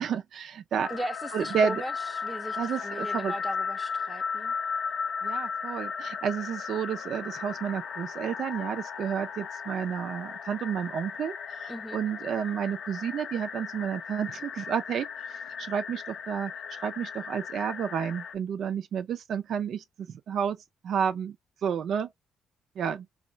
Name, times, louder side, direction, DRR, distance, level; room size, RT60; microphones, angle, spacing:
voice 1, 0.0-0.9 1.3-1.8 2.6-3.3 5.2-20.6 20.8-21.4 21.6-22.1 22.8-23.1, right 7 dB, 65° right, 0.3 m, -31 dB
sound 1, 0.8-18.3, left 6 dB, 65° left, 0.5 m, -36 dB
voice 2, 0.9-4.5 11.7-12.0, right 1 dB, 10° right, 0.5 m, -38 dB
2.3 x 2.1 x 3.7 m
cardioid pair, 90°, 0 cm